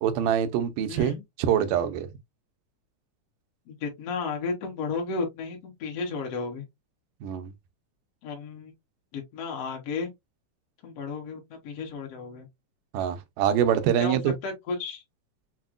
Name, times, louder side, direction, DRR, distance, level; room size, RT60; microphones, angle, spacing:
voice 1, 0.0-2.1 7.2-7.5 12.9-14.3, right 9 dB, 90° right, 2.3 m, -25 dB
voice 2, 0.9-1.2 3.7-6.7 8.2-8.7 9.1-10.1 10.8-12.5 14.0-15.0, left 4 dB, 60° left, 1.9 m, -33 dB
6.1 x 2.1 x 2.4 m
omnidirectional pair, 3.7 m